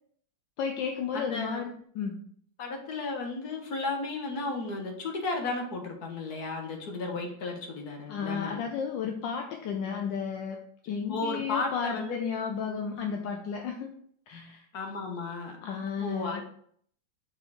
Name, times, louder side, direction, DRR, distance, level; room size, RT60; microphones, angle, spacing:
voice 1, 0.6-2.2 8.1-10.6 10.9-13.9 14.3-14.6 15.6-16.4, left 6 dB, 75° left, 3 dB, 1.3 m, -33 dB
voice 2, 1.1-1.6 2.6-8.6 9.8-10.0 11.1-12.2 14.7-16.4, left 3 dB, 55° left, 3 dB, 1.6 m, -34 dB
6.0 x 4.4 x 4.7 m, 0.62 s
omnidirectional pair, 2.1 m